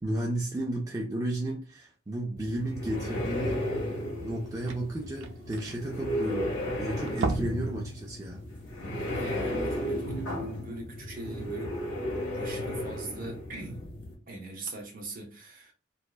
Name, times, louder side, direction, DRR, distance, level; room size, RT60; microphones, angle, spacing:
voice 1, 0.0-3.6 4.2-8.4, right 1 dB, 20° right, 0.3 m, -33 dB
sound 1, 2.4-14.1, left 1 dB, 80° left, 1.0 m, -34 dB
sound 2, 3.6-3.7 4.0-4.1 4.3-6.6 7.0-7.7 8.1-8.2 8.7-8.8, right 3 dB, 90° right, 0.4 m, -35 dB
voice 2, 9.0-11.8 12.3-13.8 14.3-15.7, right 2 dB, 45° right, 0.7 m, -41 dB
2.7 x 2.2 x 2.2 m
head